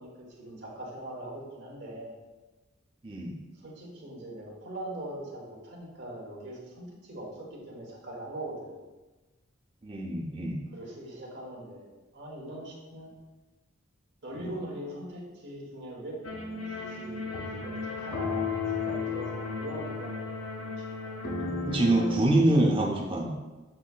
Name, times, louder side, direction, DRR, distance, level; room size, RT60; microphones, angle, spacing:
voice 1, 0.0-2.1 3.5-8.8 10.7-11.9 12.1-13.1 14.2-16.3 16.7-21.2, right 1 dB, 55° right, -4 dB, 1.2 m, -41 dB
voice 2, 3.0-3.3 9.8-10.6 14.4-14.5 21.4-23.3, right 1 dB, 25° right, -1 dB, 0.6 m, -25 dB
sound 1, 16.2-22.2, left 4 dB, 80° left, 0.8 m, -34 dB
7.5 x 2.7 x 2.4 m, 1.2 s
head